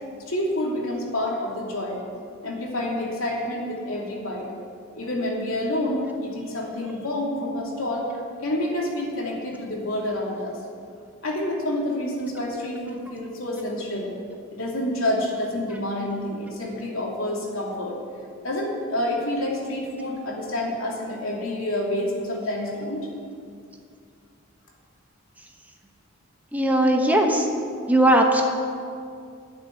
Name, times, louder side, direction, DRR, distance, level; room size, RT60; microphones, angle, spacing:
voice 1, 0.3-2.0 2.4-4.5 4.9-8.1 8.4-10.6 11.2-14.1 14.5-18.0 18.4-23.1, left 1 dB, 90° left, -2 dB, 2.9 m, -28 dB
voice 2, 26.5-27.4 27.9-28.4, right 1 dB, 10° right, 2 dB, 1.0 m, -18 dB
11.5 x 6.8 x 9.6 m, 2.3 s
head